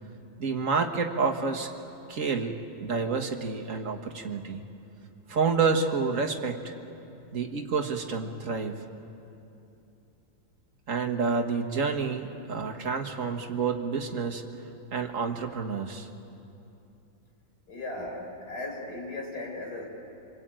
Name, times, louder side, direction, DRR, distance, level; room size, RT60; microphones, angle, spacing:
voice 1, 0.4-1.7 2.1-4.6 5.3-6.7 7.3-8.8 10.9-14.4 14.9-16.1, right 5 dB, 45° right, 4 dB, 1.8 m, -29 dB
voice 2, 17.7-19.8, left 2 dB, 55° left, 0 dB, 4.9 m, -37 dB
26.5 x 21.5 x 9.0 m, 2.8 s
omnidirectional pair, 2.0 m